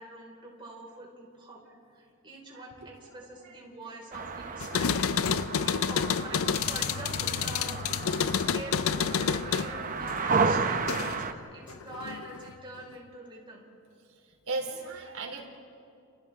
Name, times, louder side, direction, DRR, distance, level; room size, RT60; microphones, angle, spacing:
voice 1, 0.0-1.6 1.9-5.0 5.5-13.6, right 1 dB, 25° right, -3 dB, 5.1 m, -45 dB
sound 1, 4.1-11.3, right 4 dB, 40° right, 0.9 m, -32 dB
voice 2, 4.3-4.6 5.3-5.5 8.0-8.6 9.3-10.2 11.0-11.1 11.4-11.8 14.1-15.4, right 3 dB, 85° right, 2 dB, 3.4 m, -40 dB
sound 2, 4.6-11.3 11.7-12.5, left 7 dB, 80° left, 0.5 m, -29 dB
30.0 x 29.5 x 3.7 m, 2.5 s
head